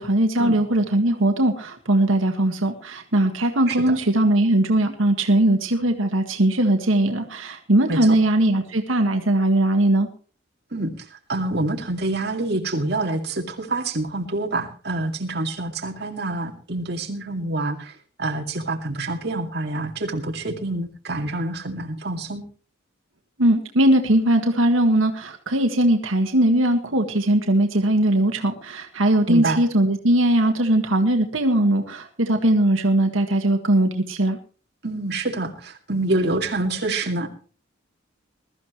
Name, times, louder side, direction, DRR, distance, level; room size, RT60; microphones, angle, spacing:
voice 1, 0.0-10.1 23.4-34.4, right 1 dB, 85° right, 4 dB, 1.7 m, -20 dB
voice 2, 3.7-4.0 7.9-8.2 10.7-10.9 11.3-17.9 18.2-22.4 29.3-29.6 34.8-37.3, right 2 dB, 55° right, 1 dB, 2.3 m, -26 dB
21.5 x 13.5 x 3.1 m, 0.39 s
head